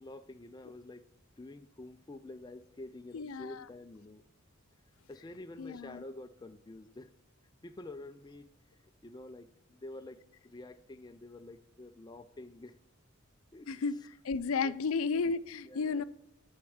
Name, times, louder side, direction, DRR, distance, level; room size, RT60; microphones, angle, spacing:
voice 1, 0.0-1.1 1.4-4.2 5.1-7.1 7.6-8.5 9.0-12.7 13.5-13.7 14.6-14.7 15.6-16.0, left 2 dB, 20° left, 0.4 m, -48 dB
voice 2, 3.1-3.7 5.6-6.0 13.7-14.0 14.2-16.0, left 4 dB, 85° left, 0.5 m, -33 dB
9.8 x 4.4 x 7.2 m
head